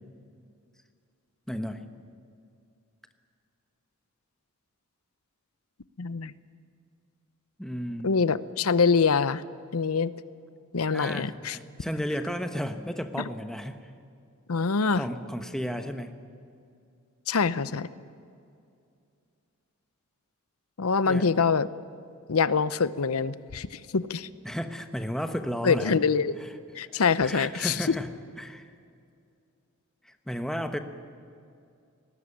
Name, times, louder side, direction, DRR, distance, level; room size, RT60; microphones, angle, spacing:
voice 1, 1.5-1.9 7.6-8.1 10.9-13.9 14.9-16.1 21.1-21.2 24.4-26.0 26.9-28.1 28.4-28.7 30.0-30.8, equal, ahead, 7 dB, 1.0 m, -33 dB
voice 2, 6.0-6.3 8.0-9.4 9.7-10.1 10.7-11.6 14.5-15.0 17.3-17.9 20.8-21.7 22.3-24.3 25.6-26.4 26.7-27.8, left 5 dB, 90° left, 16 dB, 0.7 m, -25 dB
19.5 x 18.5 x 9.9 m, 2.4 s
head